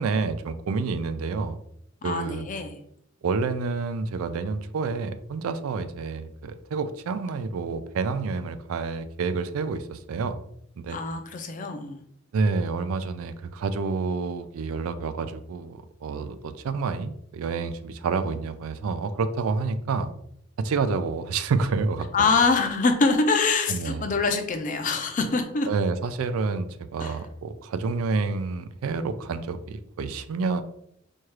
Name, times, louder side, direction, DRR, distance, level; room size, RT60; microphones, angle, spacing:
voice 1, 0.0-1.6 2.0-2.5 3.2-10.4 10.8-11.0 12.3-20.1 20.6-22.3 23.7-24.1 25.7-26.7 26.9-30.6, right 4 dB, 85° right, 11 dB, 0.4 m, -28 dB
voice 2, 2.0-2.8 10.9-12.0 22.1-25.7 27.0-27.1, left 4 dB, 40° left, 5 dB, 0.5 m, -24 dB
4.5 x 2.4 x 3.1 m, 0.70 s
head